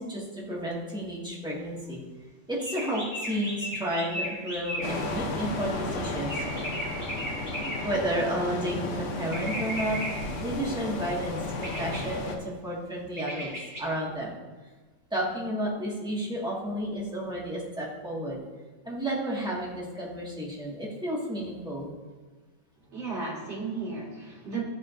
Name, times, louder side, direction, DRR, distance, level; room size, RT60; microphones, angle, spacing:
voice 1, 0.0-2.0 2.5-6.4 7.8-10.0 10.4-13.5 13.8-14.3 15.1-18.4 18.8-21.9, right 1 dB, 5° right, -6 dB, 1.4 m, -32 dB
sound 1, 2.6-5.2 6.3-8.1 9.3-10.4 11.6-12.1 13.2-13.8, equal, 20° right, 2.2 m, -36 dB
sound 2, 4.8-12.4, left 2 dB, 60° left, 0.8 m, -34 dB
voice 2, 22.8-24.6, right 4 dB, 40° right, -5 dB, 2.2 m, -34 dB
13.0 x 4.6 x 2.5 m, 1.3 s
omnidirectional pair, 2.0 m